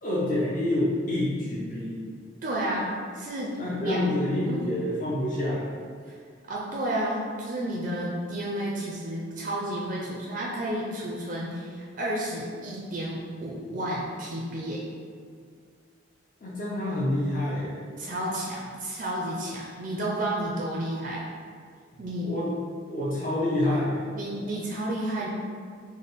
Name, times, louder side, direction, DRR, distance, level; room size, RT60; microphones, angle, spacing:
voice 1, 0.0-2.0 3.6-5.8 16.4-17.8 22.2-22.5 22.9-24.0, left 1 dB, 40° left, -7 dB, 0.5 m, -27 dB
voice 2, 2.4-3.6 3.8-4.2 4.5-4.7 6.1-6.2 6.5-14.8 18.0-21.2 22.0-22.3 24.1-25.3, right 1 dB, 45° right, -4 dB, 0.4 m, -31 dB
3.5 x 2.1 x 4.0 m, 2.1 s
head